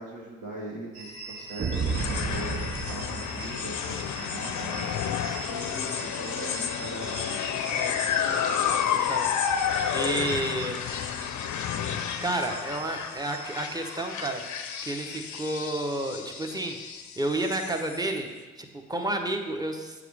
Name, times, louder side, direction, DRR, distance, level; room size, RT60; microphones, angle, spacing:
voice 1, 0.0-5.2 5.5-7.5, right 1 dB, 65° right, -3 dB, 1.8 m, -40 dB
sound 1, 0.9-18.0, right 3 dB, 80° right, 1.1 m, -44 dB
sound 2, 1.6-4.2, right 5 dB, 30° right, 0.6 m, -32 dB
sound 3, 1.7-18.2, left 8 dB, 55° left, 0.6 m, -31 dB
voice 2, 7.7-8.0 8.8-10.8 12.2-14.4 14.8-16.8 17.2-18.3 18.6-20.0, right 1 dB, 10° right, 4 dB, 0.9 m, -31 dB
7.8 x 4.9 x 3.4 m, 1.3 s
hypercardioid pair, 45°, 35 cm